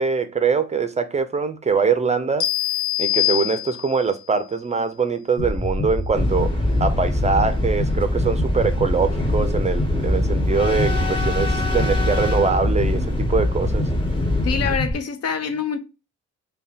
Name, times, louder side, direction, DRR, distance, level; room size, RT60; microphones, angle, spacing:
voice 1, 0.0-2.5 3.0-6.5 6.8-13.8, right 5 dB, 25° right, 0.5 m, -23 dB
sound 1, 2.4-4.1, left 15 dB, 90° left, 0.7 m, -23 dB
sound 2, 5.4-14.9, left 1 dB, 40° left, 1.1 m, -26 dB
sound 3, 6.1-14.8, left 1 dB, 15° left, 1.2 m, -24 dB
voice 2, 14.4-15.8, left 6 dB, 55° left, 0.7 m, -25 dB
5.2 x 2.3 x 2.6 m
cardioid pair, 90°, 30 cm